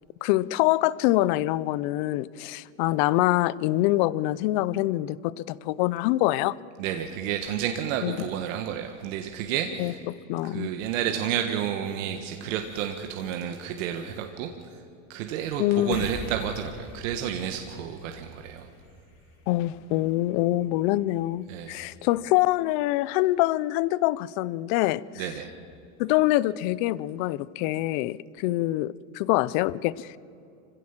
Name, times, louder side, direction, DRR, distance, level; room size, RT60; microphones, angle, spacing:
voice 1, 0.2-6.6 8.0-8.3 9.8-10.7 15.6-16.1 19.5-25.3 26.0-30.2, left 17 dB, 35° left, 21 dB, 0.4 m, -25 dB
voice 2, 6.8-10.0 10.4-14.5 15.1-18.7 21.5-21.7 25.2-25.5, right 9 dB, 65° right, 5 dB, 1.6 m, -31 dB
sound 1, 15.9-22.7, left 2 dB, 80° left, 6.5 m, -45 dB
26.5 x 16.0 x 7.3 m, 2.6 s
supercardioid pair, 150°, 42 cm